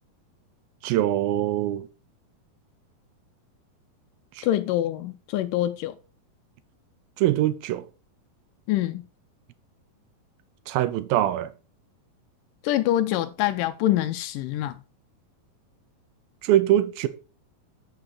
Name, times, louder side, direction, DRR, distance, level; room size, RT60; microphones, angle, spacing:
voice 1, 0.8-1.8 7.2-7.8 10.7-11.5 16.4-17.1, right 13 dB, 90° right, 2.6 m, -23 dB
voice 2, 4.4-5.9 8.7-9.0 12.6-14.8, left 13 dB, 80° left, 2.1 m, -25 dB
8.0 x 6.9 x 4.8 m
omnidirectional pair, 4.2 m